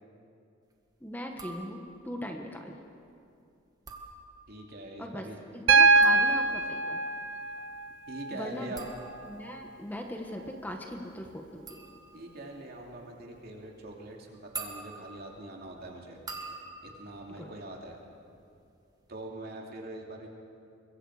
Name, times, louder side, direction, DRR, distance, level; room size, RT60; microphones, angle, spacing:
voice 1, 1.0-2.8 5.0-5.3 5.5-7.0 8.3-8.7 9.3-11.8 17.4-17.5, equal, 10° left, 3 dB, 1.4 m, -39 dB
sound 1, 1.3-2.1 3.7-4.7 5.7-18.4 18.7-19.3, right 4 dB, 20° right, 1.8 m, -47 dB
voice 2, 4.5-5.4 8.1-8.9 12.1-16.2 16.8-18.0 19.1-20.3, right 2 dB, 55° right, 0 dB, 2.9 m, -43 dB
Piano, 5.7-9.7 11.3-11.4, right 3 dB, 75° right, 1.0 m, -25 dB
24.0 x 22.0 x 5.0 m, 2.5 s
head